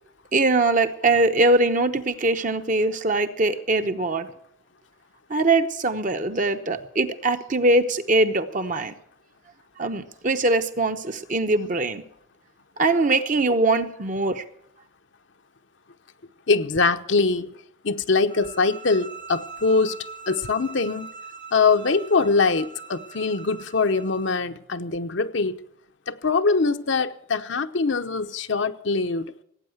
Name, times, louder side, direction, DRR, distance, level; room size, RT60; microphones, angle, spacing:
voice 1, 0.3-4.3 5.3-8.9 9.8-12.0 12.8-14.4, right 2 dB, 40° right, 0.9 m, -22 dB
voice 2, 16.5-17.5 17.8-20.0 20.3-21.1 21.5-25.6 26.1-29.3, left 4 dB, 65° left, 0.8 m, -23 dB
sound 1, 18.3-24.4, right 5 dB, 55° right, 2.3 m, -42 dB
17.5 x 8.9 x 7.9 m
head